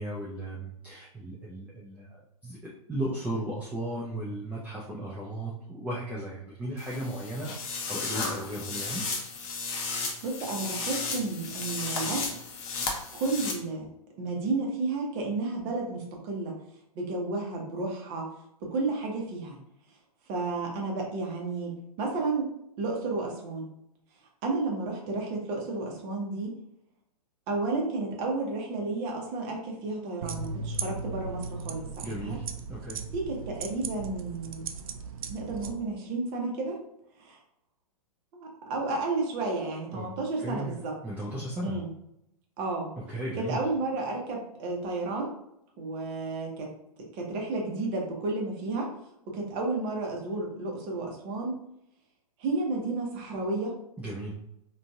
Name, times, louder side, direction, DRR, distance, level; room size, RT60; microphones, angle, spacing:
voice 1, 0.0-2.1 2.4-7.5 7.8-9.0 32.0-32.4 32.7-33.0 39.9-40.1 40.4-41.8 43.0-43.6 54.0-54.3, right 1 dB, 10° right, -5 dB, 0.5 m, -35 dB
sound 1, 6.8-13.5, left 4 dB, 30° left, 0.7 m, -34 dB
voice 2, 10.2-12.3 13.1-13.9 14.2-16.5 16.9-18.3 18.6-19.6 20.3-22.5 22.8-23.7 24.4-26.5 27.5-32.4 33.1-34.7 35.3-36.8 37.2-37.4 38.3-40.9 41.6-41.9 42.6-42.9 43.4-45.3 45.8-46.7 47.1-48.9 49.3-51.5 52.4-53.7, right 3 dB, 35° right, 0 dB, 1.0 m, -32 dB
sound 2, 30.2-35.7, right 4 dB, 65° right, 0.4 m, -37 dB
3.8 x 2.5 x 2.3 m, 0.78 s
figure-of-eight pair, 115°, 20 cm